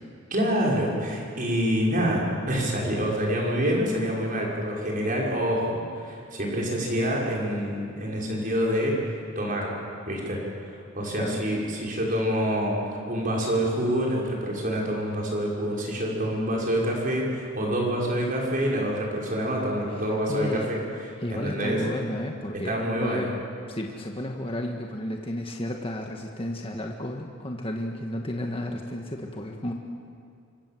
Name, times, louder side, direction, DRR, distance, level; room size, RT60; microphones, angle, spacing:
voice 1, 0.3-9.0 9.4-9.7 10.1-10.4 10.7-12.8 13.1-20.8 21.3-21.8 22.6-23.3, equal, 40° right, -2 dB, 6.1 m, -26 dB
voice 2, 19.9-20.7 21.2-22.7 23.0-23.3 23.7-29.7, left 1 dB, 25° left, 1 dB, 1.6 m, -32 dB
26.5 x 25.0 x 7.8 m, 2.4 s
head